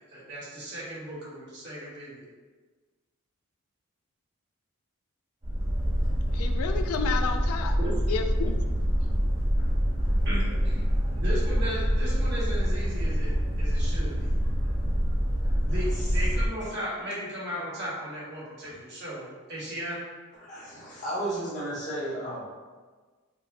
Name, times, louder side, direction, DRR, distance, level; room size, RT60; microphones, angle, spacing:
voice 1, 0.0-2.3 7.8-7.9 10.2-10.8 11.1-14.3 15.7-20.0, equal, 50° right, -7 dB, 1.2 m, -36 dB
Boat Water vehicle, 5.4-16.5, equal, 30° right, 0.9 m, -26 dB
voice 2, 6.3-7.8 8.1-8.7, left 6 dB, 80° left, 5 dB, 0.3 m, -31 dB
voice 3, 20.4-22.5, right 1 dB, 35° left, -7 dB, 1.0 m, -34 dB
4.9 x 2.1 x 2.6 m, 1.4 s
head